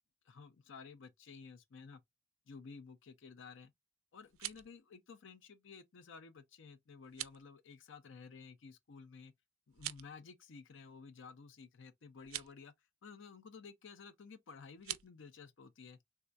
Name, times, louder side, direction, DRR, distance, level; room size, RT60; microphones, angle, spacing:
voice 1, 0.3-2.0 2.5-3.7 4.1-9.3 9.7-12.7 13.0-16.0, left 5 dB, 65° left, 0.5 m, -54 dB
sound 1, 4.2-4.7 7.0-7.4 9.7-10.2 12.2-12.5 14.8-15.1, right 15 dB, 90° right, 0.4 m, -44 dB
3.5 x 2.2 x 2.4 m
head